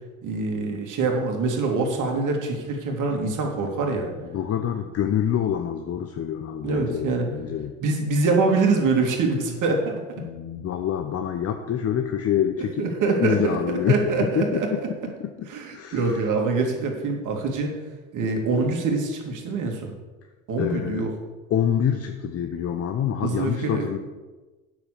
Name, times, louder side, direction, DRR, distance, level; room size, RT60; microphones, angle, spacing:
voice 1, 0.2-4.1 6.6-7.3 7.8-10.0 12.8-13.6 13.9-14.7 15.5-17.7 18.1-19.9 20.5-21.1 23.2-23.9, right 3 dB, 45° right, 2 dB, 2.6 m, -24 dB
voice 2, 4.2-7.7 10.2-16.3 20.6-21.1 21.5-24.0, left 9 dB, 35° left, 7 dB, 0.9 m, -26 dB
9.3 x 7.3 x 6.6 m, 1.2 s
hypercardioid pair, 75°, 42 cm